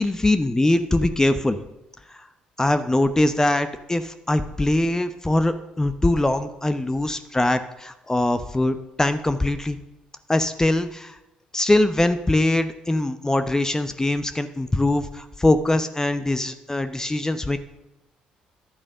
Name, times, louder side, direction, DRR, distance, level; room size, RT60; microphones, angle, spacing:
voice 1, 0.0-1.6 2.6-9.8 10.3-11.2 11.5-17.6, left 1 dB, 15° left, 10 dB, 0.8 m, -22 dB
11.0 x 8.6 x 6.6 m, 0.94 s
hypercardioid pair, 50°, 4 cm